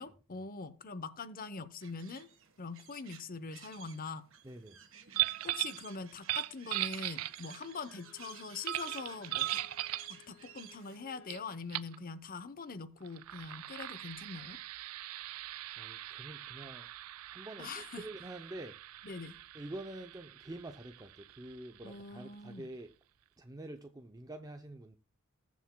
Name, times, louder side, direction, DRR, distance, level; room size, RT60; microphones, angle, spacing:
voice 1, 0.0-2.3 2.6-4.3 5.4-9.6 10.1-14.6 17.6-18.0 19.0-19.4 21.8-22.7, left 4 dB, 40° left, 0.8 m, -43 dB
sound 1, 1.8-11.0, right 9 dB, 65° right, 1.4 m, -53 dB
voice 2, 4.4-4.8 15.8-16.9 17.3-18.8 19.5-22.9 23.4-25.0, right 1 dB, 15° right, 0.6 m, -47 dB
sound 2, 5.1-5.8 6.2-7.7 8.7-10.1 11.3-11.4 11.7-12.0 13.0-22.3, right 15 dB, 85° right, 0.4 m, -39 dB
Bowed string instrument, 7.4-11.5, left 10 dB, 85° left, 1.2 m, -62 dB
20.0 x 7.3 x 2.2 m
head